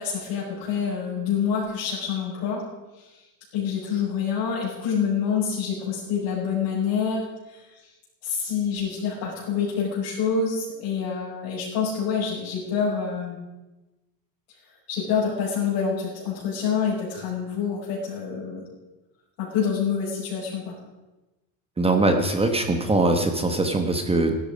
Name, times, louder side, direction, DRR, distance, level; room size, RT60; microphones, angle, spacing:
voice 1, 0.0-2.6 3.0-3.1 3.5-7.2 7.5-7.6 8.2-13.4 14.9-18.6 19.4-20.7, left 6 dB, 60° left, -8 dB, 5.9 m, -27 dB
voice 2, 21.8-24.4, right 2 dB, 10° right, 5 dB, 1.1 m, -22 dB
16.0 x 12.5 x 5.1 m, 1.1 s
cardioid pair, 160°, 47 cm